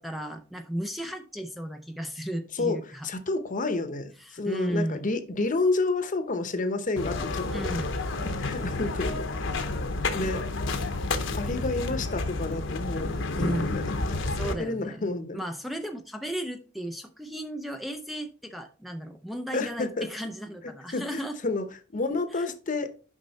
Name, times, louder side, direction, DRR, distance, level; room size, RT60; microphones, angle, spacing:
voice 1, 0.0-3.1 4.2-5.1 7.5-7.9 13.3-13.9 14.3-21.3 22.3-22.5, equal, ahead, 5 dB, 0.5 m, -34 dB
voice 2, 2.5-7.9 8.2-9.5 10.1-10.4 11.3-13.1 13.4-14.0 14.6-15.4 19.5-20.1 20.9-21.6 21.9-22.9, left 3 dB, 40° left, 9 dB, 0.8 m, -30 dB
sound 1, 7.0-14.5, left 2 dB, 70° left, 0.9 m, -30 dB
6.3 x 5.4 x 4.1 m, 0.37 s
head